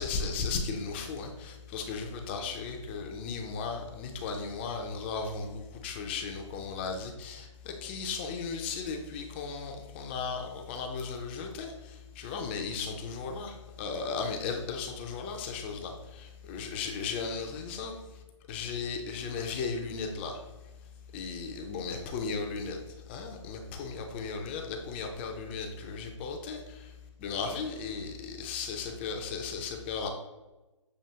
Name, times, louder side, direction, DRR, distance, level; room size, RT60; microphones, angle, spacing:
voice 1, 0.0-17.9 18.5-20.4 21.1-26.9 27.2-30.1, left 5 dB, 20° left, 3 dB, 0.4 m, -36 dB
6.8 x 2.8 x 2.8 m, 1.1 s
hypercardioid pair, 145°, 16 cm